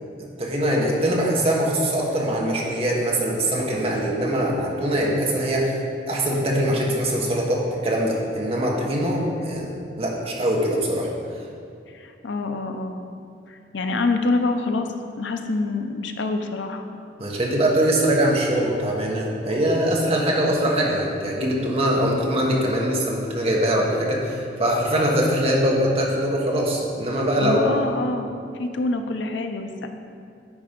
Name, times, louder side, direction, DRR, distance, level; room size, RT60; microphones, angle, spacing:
voice 1, 0.2-5.8 6.1-9.7 10.0-11.1 17.2-27.7, right 1 dB, 30° right, -2 dB, 1.1 m, -22 dB
voice 2, 11.9-13.0 13.5-14.9 15.2-16.8 27.4-28.3 28.5-29.9, left 3 dB, 80° left, 6 dB, 0.6 m, -26 dB
9.5 x 4.3 x 5.1 m, 2.4 s
head